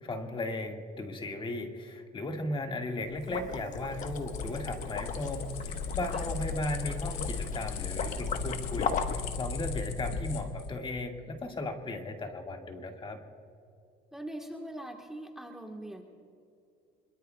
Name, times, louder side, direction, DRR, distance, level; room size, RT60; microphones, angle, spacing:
voice 1, 0.0-13.2, left 2 dB, 30° left, 3 dB, 1.9 m, -36 dB
sound 1, 3.1-10.7, left 5 dB, 85° left, 1.4 m, -37 dB
Liquid, 3.2-9.4, left 6 dB, 50° left, 1.2 m, -38 dB
Acoustic guitar, 3.3-8.5, right 5 dB, 90° right, 2.8 m, -54 dB
voice 2, 14.1-16.0, right 1 dB, 5° right, 2 dB, 1.4 m, -42 dB
25.0 x 22.5 x 2.3 m, 2.5 s
cardioid pair, 110°, 17 cm